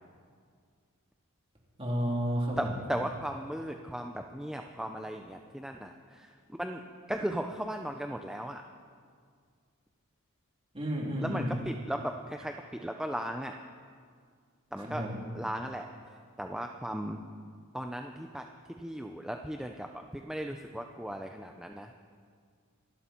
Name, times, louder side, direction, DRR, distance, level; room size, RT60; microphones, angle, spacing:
voice 1, 1.8-2.7 10.7-11.5 14.9-15.2, equal, 25° right, -3 dB, 3.3 m, -31 dB
voice 2, 2.6-6.8 7.1-8.6 11.2-13.6 14.7-15.0 15.3-15.9 16.4-17.2 17.7-18.5 18.8-21.9, right 1 dB, 5° right, 4 dB, 0.5 m, -36 dB
26.0 x 11.5 x 4.4 m, 2.1 s
head